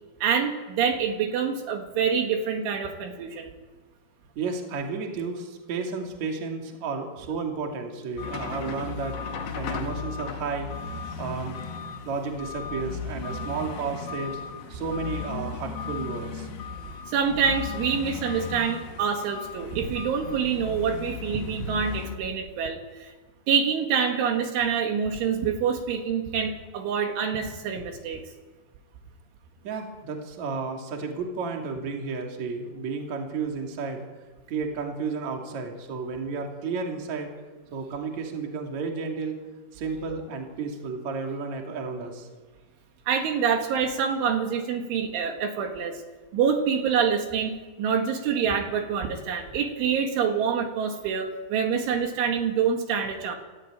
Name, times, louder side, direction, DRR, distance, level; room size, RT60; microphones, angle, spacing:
voice 1, 0.2-3.5 17.1-23.1 23.5-28.2 43.1-46.0 46.3-53.4, right 7 dB, 70° right, 4 dB, 4.2 m, -26 dB
voice 2, 4.3-9.1 9.5-10.7 11.2-11.6 12.0-14.4 14.7-16.5 29.6-34.1 34.5-37.3 37.7-39.4 39.7-42.3, right 4 dB, 40° right, 2 dB, 3.4 m, -32 dB
sound 1, 8.2-22.2, left 5 dB, 55° left, 3.2 m, -36 dB
28.0 x 14.5 x 8.9 m, 1.3 s
omnidirectional pair, 5.8 m